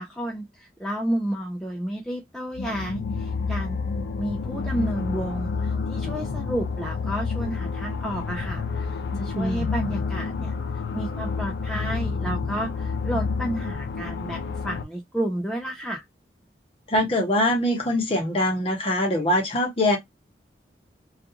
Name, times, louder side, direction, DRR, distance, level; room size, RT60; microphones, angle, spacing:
voice 1, 0.0-3.8 4.2-10.5 10.9-16.0, right 1 dB, 5° left, 0.3 m, -31 dB
sound 1, 2.5-14.8, left 4 dB, 80° left, 0.4 m, -29 dB
voice 2, 9.3-9.7 16.9-20.0, left 1 dB, 30° left, 0.9 m, -23 dB
2.4 x 2.4 x 2.7 m
head